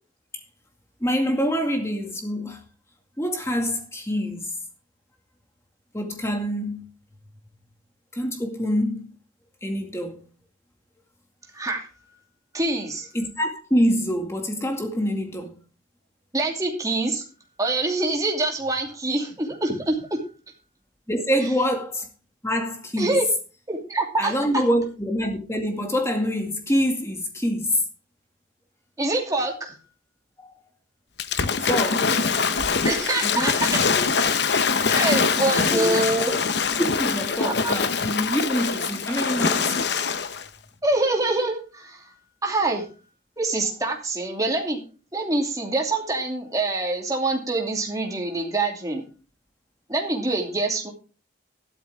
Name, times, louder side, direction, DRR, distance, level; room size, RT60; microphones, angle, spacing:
voice 1, 1.0-2.6 3.2-4.5 5.9-6.9 8.1-9.1 9.6-10.2 13.1-15.6 21.1-22.1 22.4-23.2 24.2-27.8 30.4-30.6 31.6-32.2 33.2-34.1 35.7-36.0 36.8-39.7, equal, 15° left, 2.2 m, -26 dB
voice 2, 11.5-11.9 12.5-13.1 16.3-17.2 17.6-20.2 21.3-21.5 23.0-23.2 23.7-24.3 29.0-29.7 32.8-33.8 34.9-36.3 37.4-37.8 40.8-42.1 42.4-42.9 43.4-44.8 45.1-49.0 49.9-50.9, right 2 dB, 20° right, 2.7 m, -25 dB
Waves surf / Splash splatter, 31.2-40.5, left 5 dB, 60° left, 0.9 m, -23 dB
13.0 x 12.0 x 3.6 m
head